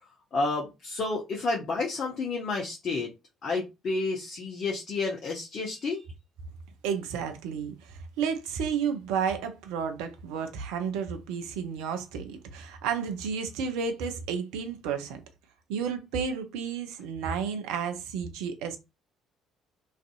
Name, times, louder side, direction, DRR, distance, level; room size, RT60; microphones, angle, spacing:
voice 1, 0.3-3.1 3.4-6.0, left 3 dB, 45° left, 0.6 m, -30 dB
voice 2, 6.8-15.2 15.7-18.8, right 6 dB, 60° right, 0.4 m, -32 dB
2.5 x 2.4 x 2.3 m
figure-of-eight pair, 50°, 0 cm